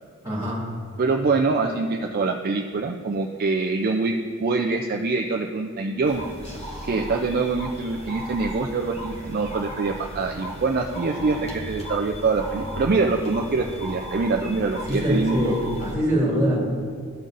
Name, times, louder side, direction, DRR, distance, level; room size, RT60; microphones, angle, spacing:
voice 1, 0.2-0.6 14.9-16.6, equal, 15° right, -6 dB, 2.0 m, -23 dB
voice 2, 1.0-4.1 4.4-6.2 6.8-15.5, right 3 dB, 40° right, 2 dB, 0.3 m, -24 dB
sound 1, 6.0-15.9, equal, 25° left, 0.8 m, -36 dB
13.0 x 5.3 x 2.5 m, 2.2 s
head